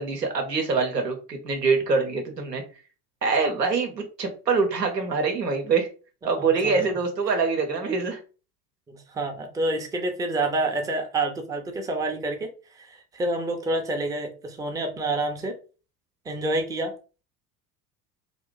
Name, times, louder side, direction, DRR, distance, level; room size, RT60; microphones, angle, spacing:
voice 1, 0.0-2.6 3.2-5.9 6.2-8.2, right 4 dB, 85° right, 4 dB, 0.8 m, -24 dB
voice 2, 6.4-6.8 8.9-15.6 16.3-16.9, right 2 dB, 10° right, 4 dB, 0.4 m, -28 dB
2.4 x 2.1 x 3.7 m, 0.35 s
figure-of-eight pair, 70°, 47 cm